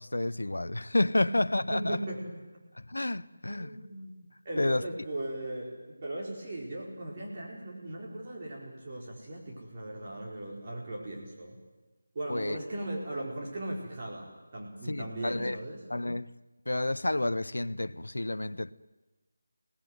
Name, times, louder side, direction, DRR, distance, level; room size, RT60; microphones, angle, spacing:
voice 1, 0.0-2.0 2.8-3.7 4.6-4.8 12.3-12.6 14.9-15.6 15.9-16.3 16.7-18.7, left 1 dB, 65° left, 0.9 m, -30 dB
voice 2, 1.1-2.3 3.5-11.6 12.1-15.8, right 1 dB, 30° right, 4.6 m, -38 dB
28.0 x 19.0 x 9.3 m
figure-of-eight pair, 160°, 0 cm